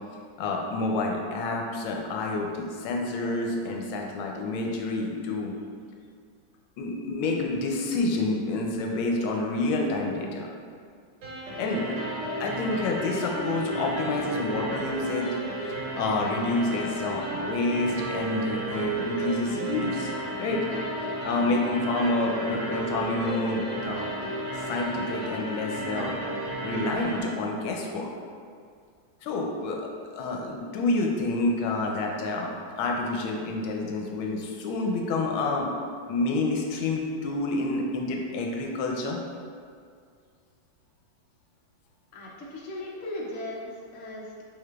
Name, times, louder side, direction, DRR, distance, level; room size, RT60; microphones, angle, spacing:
voice 1, 0.4-5.5 6.8-10.5 11.6-11.9 12.4-15.3 15.9-20.1 20.4-20.6 21.2-24.1 24.6-26.2 26.6-28.1 29.2-32.5 32.8-35.7 36.1-39.2, left 2 dB, 85° left, 1 dB, 1.4 m, -28 dB
sound 1, 11.2-27.2, right 2 dB, 70° right, 1.5 m, -33 dB
voice 2, 42.1-44.4, left 1 dB, 70° left, -4 dB, 0.7 m, -37 dB
5.6 x 3.1 x 2.3 m, 2.2 s
omnidirectional pair, 2.2 m